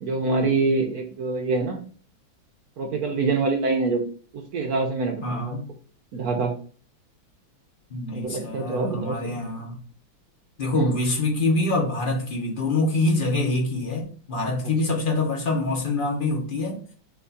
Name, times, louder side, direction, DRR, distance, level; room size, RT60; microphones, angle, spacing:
voice 1, 0.0-1.8 2.8-4.0 4.3-5.5 6.1-6.5 8.1-9.4 10.7-10.9, right 3 dB, 60° right, 1.0 m, -25 dB
voice 2, 5.2-5.7 7.9-9.8 10.6-16.8, left 2 dB, 60° left, 0.5 m, -25 dB
4.4 x 2.3 x 4.0 m
omnidirectional pair, 2.1 m